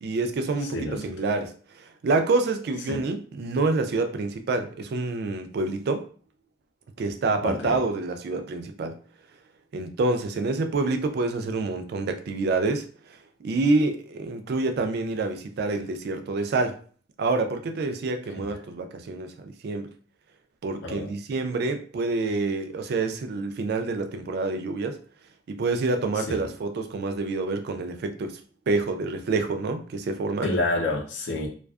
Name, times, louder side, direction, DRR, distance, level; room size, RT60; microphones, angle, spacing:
voice 1, 0.0-6.0 7.0-9.0 9.7-16.8 17.2-19.9 20.6-25.0 25.5-28.4 28.7-30.5, right 3 dB, 60° right, 0.3 m, -27 dB
voice 2, 0.6-1.1 2.9-3.0 7.4-7.8 18.4-18.5 20.8-21.1 26.2-26.4 30.4-31.5, left 2 dB, 75° left, 0.6 m, -29 dB
2.4 x 2.3 x 2.3 m
head